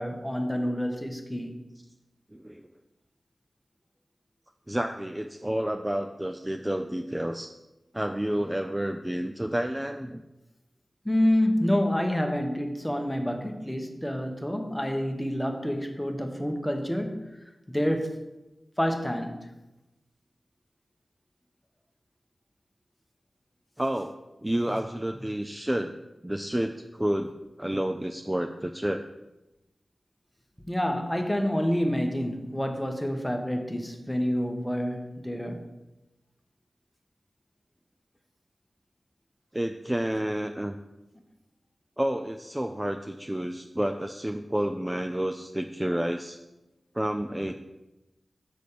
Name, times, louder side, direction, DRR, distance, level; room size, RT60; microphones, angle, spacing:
voice 1, 0.0-1.6 11.0-17.2 17.7-18.2 18.8-19.5 30.7-35.7, equal, 10° left, 1.0 m, -28 dB
voice 2, 2.3-2.7 4.7-7.5 7.9-10.2 23.8-26.0 26.2-27.3 27.6-29.0 39.5-40.8 42.0-46.4 46.9-47.5, right 1 dB, 15° right, 0.4 m, -30 dB
6.8 x 4.1 x 6.6 m
cardioid pair, 50°, 0 cm